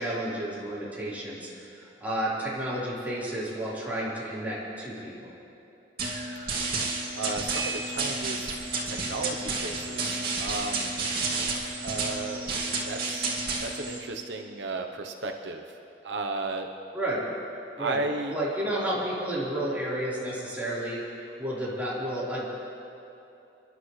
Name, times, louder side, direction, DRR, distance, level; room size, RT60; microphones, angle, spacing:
voice 1, 0.0-5.3 16.9-17.2 17.8-22.5, right 1 dB, 10° right, -9 dB, 4.2 m, -31 dB
sound 1, 6.0-14.0, right 3 dB, 60° right, 2.4 m, -31 dB
voice 2, 7.1-8.5 8.9-10.9 11.8-12.5 12.9-13.3 13.6-15.8 16.0-16.7 17.8-18.4, right 3 dB, 80° right, 3 dB, 0.9 m, -34 dB
29.0 x 12.0 x 3.3 m, 2.9 s
head